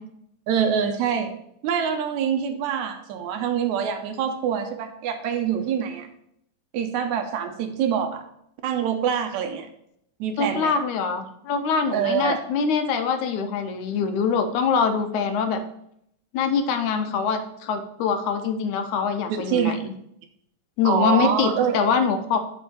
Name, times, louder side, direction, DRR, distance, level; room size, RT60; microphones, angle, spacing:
voice 1, 0.5-1.3 1.6-6.1 6.7-8.2 8.6-9.7 10.2-10.7 11.9-12.4 19.3-19.9 20.8-21.8, right 8 dB, 75° right, 6 dB, 2.0 m, -25 dB
voice 2, 10.4-15.6 16.3-19.8 20.8-22.4, left 5 dB, 80° left, 7 dB, 2.1 m, -24 dB
7.4 x 4.3 x 6.9 m, 0.73 s
omnidirectional pair, 3.6 m